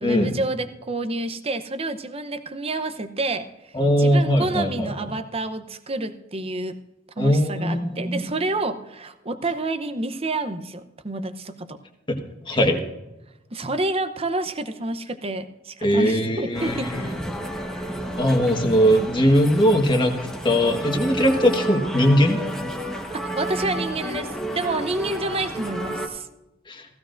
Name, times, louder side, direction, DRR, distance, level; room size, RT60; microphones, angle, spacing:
voice 1, 0.0-3.5 4.0-6.8 7.2-11.8 13.5-17.1 23.1-26.3, right 2 dB, 30° right, 9 dB, 0.8 m, -29 dB
voice 2, 3.7-5.1 7.2-8.3 12.1-12.8 15.8-17.2 18.2-20.1 20.4-22.4 26.7-26.9, equal, 25° left, 4 dB, 1.4 m, -20 dB
sound 1, 16.5-26.1, right 1 dB, 5° left, 1.2 m, -31 dB
17.0 x 15.0 x 2.6 m, 0.99 s
head